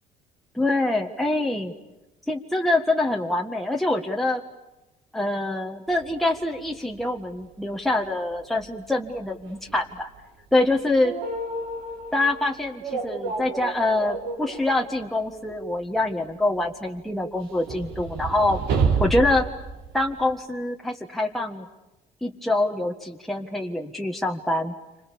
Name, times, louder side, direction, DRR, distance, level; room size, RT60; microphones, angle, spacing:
voice 1, 0.6-1.7 2.3-4.4 5.1-10.1 10.5-11.1 12.1-18.6 19.0-19.5 19.9-21.7 22.2-24.7, left 2 dB, ahead, 0 dB, 1.7 m, -25 dB
sound 1, 6.0-6.1 6.6-6.7 7.0-7.1 8.4-8.9 9.2-9.3 9.5-9.9 11.0-12.4 12.8-15.1 15.4-15.5 16.0-16.1 17.3-20.3, right 4 dB, 90° right, 4.3 m, -29 dB
29.5 x 26.0 x 7.1 m, 1.0 s
cardioid pair, 110°, 17 cm